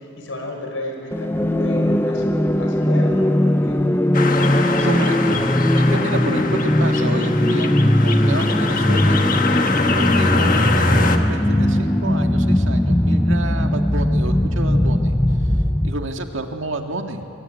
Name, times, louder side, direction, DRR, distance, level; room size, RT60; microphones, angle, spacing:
voice 1, 0.2-3.8 4.4-5.0, left 1 dB, 75° left, 2 dB, 5.8 m, -33 dB
sound 1, 1.1-16.1, left 1 dB, 10° left, 0.6 m, -19 dB
sound 2, 4.1-11.2, left 4 dB, 40° left, 1.5 m, -24 dB
voice 2, 4.8-9.2 9.9-15.2 15.8-17.2, right 2 dB, 75° right, 4 dB, 1.8 m, -29 dB
25.5 x 22.5 x 9.3 m, 2.8 s
head